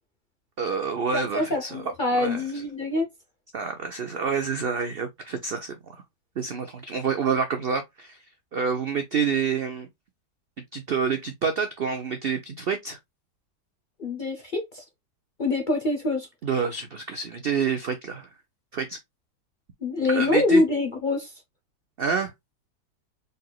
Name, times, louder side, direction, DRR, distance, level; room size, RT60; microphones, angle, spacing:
voice 1, 0.6-1.8 2.2-2.4 3.5-6.0 6.4-8.2 8.5-9.9 10.7-13.0 16.4-18.3 18.7-19.0 20.1-20.6 22.0-22.3, right 6 dB, 75° right, 0.5 m, -28 dB
voice 2, 1.1-3.1 14.0-14.8 15.4-16.3 19.8-21.3, left 2 dB, 50° left, 0.6 m, -25 dB
4.1 x 4.0 x 2.2 m
omnidirectional pair, 1.8 m